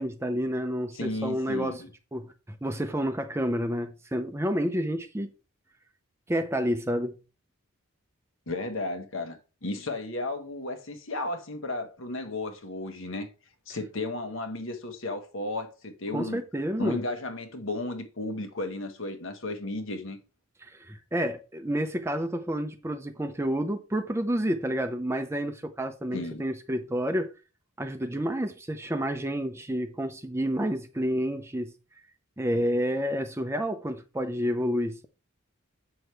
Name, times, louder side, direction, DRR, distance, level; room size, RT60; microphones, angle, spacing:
voice 1, 0.0-1.8 2.1-5.3 6.3-7.2 16.1-17.0 20.6-27.3 27.8-31.7 32.4-35.1, equal, 10° right, 0.6 m, -29 dB
voice 2, 0.9-1.9 8.5-13.3 13.7-16.4 16.8-20.2 26.1-26.4, left 2 dB, 65° left, 1.4 m, -34 dB
7.8 x 6.2 x 3.3 m
head